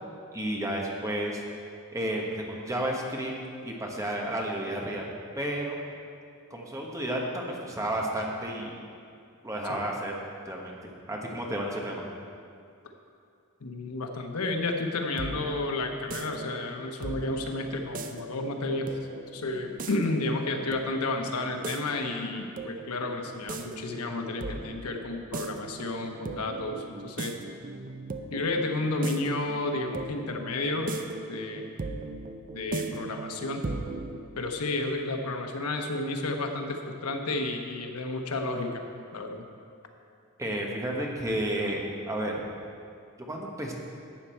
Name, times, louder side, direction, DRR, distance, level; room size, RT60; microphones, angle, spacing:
voice 1, 0.3-1.4 1.9-3.3 3.6-5.0 5.3-5.8 6.5-8.8 9.4-10.1 10.4-10.8 11.1-12.0 40.4-42.3 43.3-43.7, right 1 dB, 15° right, -1 dB, 1.3 m, -31 dB
voice 2, 13.6-18.9 19.3-27.4 28.3-30.9 31.3-31.7 32.5-33.7 34.4-38.8 39.1-39.4, left 2 dB, 90° left, 4 dB, 1.0 m, -31 dB
sound 1, 14.8-34.2, right 3 dB, 40° right, 0.6 m, -39 dB
12.0 x 8.3 x 4.4 m, 2.4 s
head